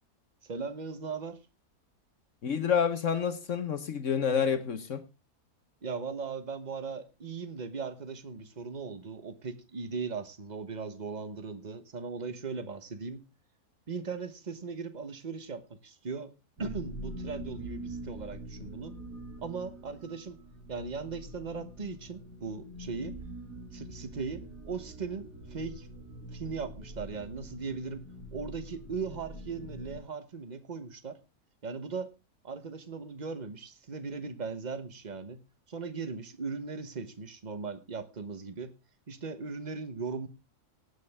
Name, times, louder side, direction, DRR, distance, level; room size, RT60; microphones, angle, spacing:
voice 1, 0.4-1.4 5.8-13.2 13.9-16.3 16.6-18.9 19.4-20.4 20.7-23.1 23.7-25.9 26.3-28.0 28.3-31.2 31.6-32.1 32.4-35.4 35.7-38.7 39.1-40.3, right 5 dB, 30° right, 1.1 m, -38 dB
voice 2, 2.4-5.0, left 7 dB, 55° left, 1.2 m, -28 dB
sound 1, 16.6-30.0, right 1 dB, 80° right, 4.0 m, -44 dB
18.5 x 8.0 x 3.5 m
omnidirectional pair, 1.7 m